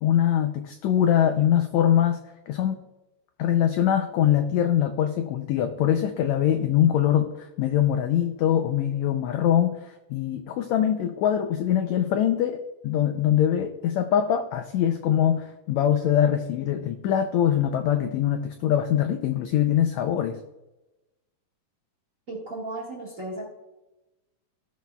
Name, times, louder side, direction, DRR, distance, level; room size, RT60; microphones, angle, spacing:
voice 1, 0.0-2.2 2.5-2.8 3.4-12.6 12.8-20.4, left 10 dB, 85° left, 8 dB, 1.6 m, -23 dB
voice 2, 22.3-23.4, right 2 dB, 35° right, -2 dB, 1.3 m, -35 dB
15.5 x 6.2 x 2.3 m, 0.99 s
omnidirectional pair, 3.8 m